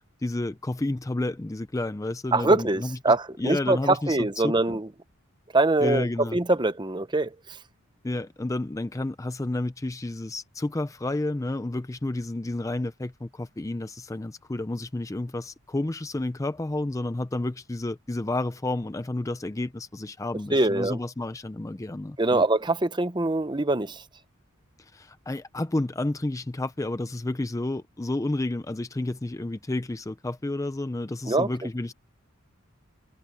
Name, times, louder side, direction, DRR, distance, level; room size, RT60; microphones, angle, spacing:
voice 1, 0.2-3.0 3.4-4.8 5.8-6.4 8.0-22.5 24.8-31.9, left 2 dB, 15° left, 0.4 m, -30 dB
voice 2, 2.3-4.9 5.5-6.1 6.3-7.3 20.5-21.0 22.2-24.0 31.3-31.5, right 2 dB, 20° right, 0.8 m, -23 dB
head